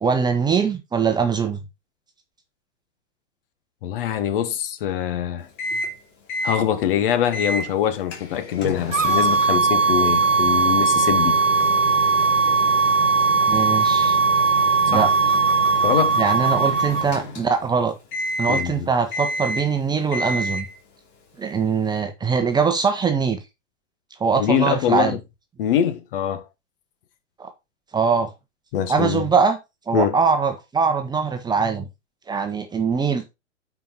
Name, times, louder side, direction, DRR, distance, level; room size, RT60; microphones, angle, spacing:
voice 1, 0.0-1.6 13.5-14.2 14.9-15.1 16.2-17.9 18.4-20.7 21.4-23.4 24.2-25.2 27.4-27.5 27.9-28.3 28.8-29.6 29.9-31.9 32.3-33.3, right 5 dB, 10° right, 1.1 m, -22 dB
voice 2, 3.8-5.5 6.4-11.4 14.9-15.1 15.8-16.2 18.5-18.9 24.3-25.2 25.6-26.4 28.7-29.2 29.9-30.2, left 10 dB, 45° left, 1.5 m, -23 dB
Microwave oven, 5.6-6.0 6.3-6.6 7.3-7.7 8.1-17.7 18.1-18.7 19.1-19.8 20.1-20.7, equal, 30° left, 3.0 m, -30 dB
sound 1, 8.9-17.1, right 4 dB, 85° right, 0.9 m, -19 dB
9.3 x 4.8 x 4.2 m
figure-of-eight pair, 100°, 37 cm